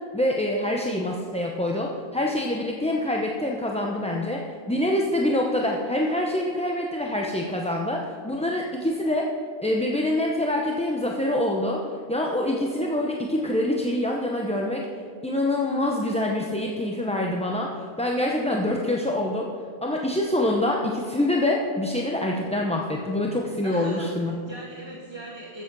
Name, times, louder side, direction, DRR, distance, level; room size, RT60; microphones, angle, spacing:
voice 1, 0.1-9.3 9.6-11.8 12.1-14.9 15.2-17.7 18.0-19.5 19.8-24.3, left 1 dB, 5° left, -1 dB, 0.6 m, -25 dB
voice 2, 23.6-25.6, right 2 dB, 25° right, -2 dB, 1.1 m, -39 dB
13.5 x 7.8 x 5.4 m, 2.4 s
omnidirectional pair, 1.0 m